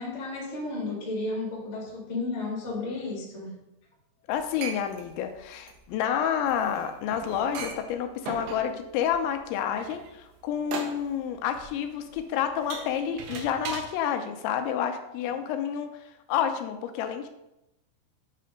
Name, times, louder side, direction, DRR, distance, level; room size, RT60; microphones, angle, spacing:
voice 1, 0.0-3.5, left 3 dB, 40° left, -4 dB, 0.9 m, -33 dB
voice 2, 4.3-15.9 16.3-17.3, left 9 dB, 85° left, 7 dB, 3.0 m, -29 dB
sound 1, 4.3-13.9, right 5 dB, 75° right, 2.9 m, -39 dB
8.6 x 3.3 x 5.1 m, 0.89 s
omnidirectional pair, 5.2 m